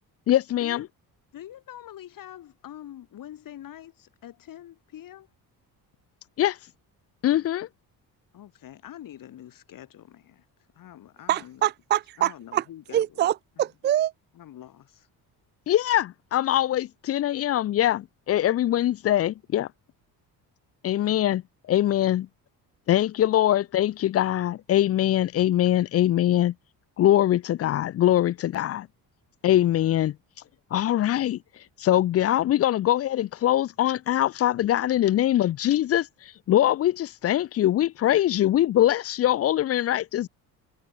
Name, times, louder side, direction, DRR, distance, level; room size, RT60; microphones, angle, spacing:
voice 1, 0.3-0.9 6.4-6.6 7.2-7.7 15.7-19.7 20.8-21.4 21.7-22.3 22.9-26.5 27.0-28.9 29.4-30.2 30.7-31.4 31.8-36.1 36.5-40.3, left 12 dB, 40° left, 0.4 m, -22 dB
voice 2, 1.3-5.3 8.3-10.5 10.7-11.7 12.2-13.3 14.4-15.1, left 12 dB, 55° left, 7.8 m, -45 dB
voice 3, 11.3-12.6 12.9-14.1, right 12 dB, 30° right, 0.4 m, -25 dB
cardioid pair, 165°, 39 cm